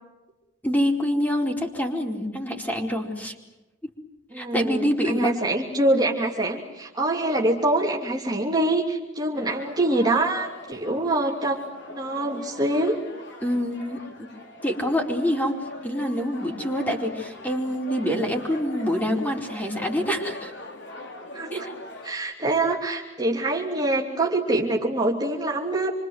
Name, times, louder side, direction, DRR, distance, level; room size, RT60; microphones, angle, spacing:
voice 1, 0.6-3.4 4.3-5.3 13.4-14.3 14.6-15.6 15.8-20.5 21.5-21.7, equal, 10° left, 1 dB, 4.5 m, -26 dB
voice 2, 4.3-11.6 11.9-13.0 21.3-21.7 22.0-25.9, right 2 dB, 20° right, -2 dB, 2.9 m, -25 dB
sound 1, 9.3-22.1, left 1 dB, 65° left, 4.3 m, -42 dB
28.0 x 25.0 x 8.0 m, 1.0 s
head